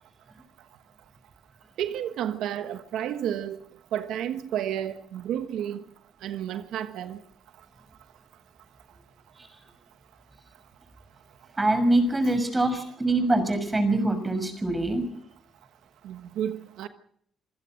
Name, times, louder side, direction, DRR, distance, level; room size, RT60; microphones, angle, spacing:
voice 1, 1.8-3.6 3.9-5.8 6.2-7.2 16.0-16.9, right 10 dB, 85° right, 1.2 m, -31 dB
voice 2, 11.6-15.0, right 2 dB, 20° right, 6.0 m, -24 dB
27.0 x 16.0 x 6.5 m
cardioid pair, 90°, 0 cm